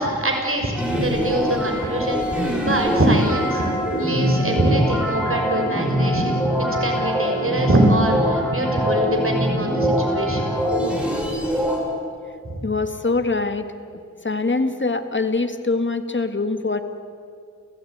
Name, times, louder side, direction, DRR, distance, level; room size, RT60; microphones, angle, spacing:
voice 1, 0.0-3.6 4.0-10.5, right 1 dB, 40° right, 2 dB, 6.1 m, -23 dB
Organ, 0.7-11.7, equal, 15° left, 1.8 m, -31 dB
sound 1, 0.8-11.8, equal, 5° right, 7.3 m, -24 dB
voice 2, 12.6-13.7 14.2-16.8, left 3 dB, 35° left, 8 dB, 1.9 m, -23 dB
29.0 x 15.5 x 9.5 m, 2.3 s
wide cardioid pair, 50°, 32 cm